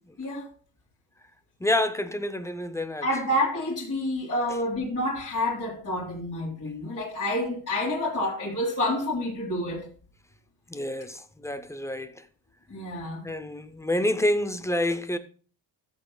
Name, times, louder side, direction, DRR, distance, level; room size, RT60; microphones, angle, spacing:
voice 1, 0.2-0.5 3.0-9.9 12.7-13.3, left 1 dB, 30° left, 3.0 m, -28 dB
voice 2, 1.6-3.1 10.7-12.2 13.2-15.2, left 1 dB, 5° left, 0.5 m, -28 dB
14.5 x 7.8 x 2.3 m
cardioid pair, 160°, 48 cm